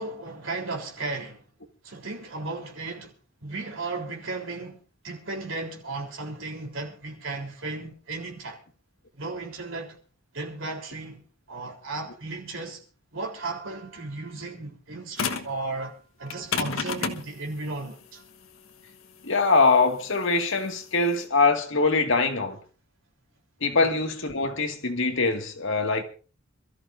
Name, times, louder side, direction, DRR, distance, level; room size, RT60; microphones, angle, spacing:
voice 1, 0.0-1.4 1.8-3.2 3.4-4.8 5.0-8.6 9.1-10.0 10.3-12.8 13.1-18.2 23.8-23.9, right 3 dB, 70° right, 3.7 m, -35 dB
sound 1, 15.2-15.6 16.3-21.2, left 5 dB, 85° left, 1.4 m, -31 dB
voice 2, 19.2-22.6 23.6-26.0, left 3 dB, 65° left, 2.0 m, -23 dB
27.0 x 14.0 x 2.6 m
head